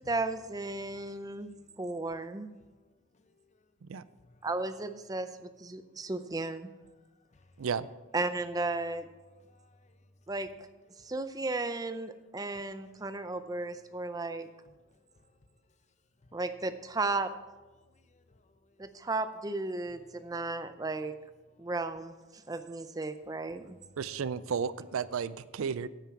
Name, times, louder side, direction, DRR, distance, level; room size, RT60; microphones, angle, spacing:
voice 1, 0.0-1.5 1.8-2.5 4.4-6.7 8.1-9.1 10.3-10.5 11.0-14.5 16.3-17.3 18.8-21.1 21.6-23.8, right 2 dB, 15° right, 0.5 m, -34 dB
voice 2, 0.6-2.3 2.6-2.9 3.1-3.7 4.2-4.5 5.1-5.2 5.7-6.1 7.2-7.7 9.2-10.1 10.6-11.2 12.0-12.3 12.5-15.6 16.2-16.4 17.7-19.1 19.7-20.8 21.5-21.7 22.4-22.6 23.5-23.8, left 2 dB, 35° left, 0.6 m, -64 dB
voice 3, 24.0-25.9, right 6 dB, 80° right, 0.4 m, -33 dB
9.1 x 8.8 x 5.8 m
head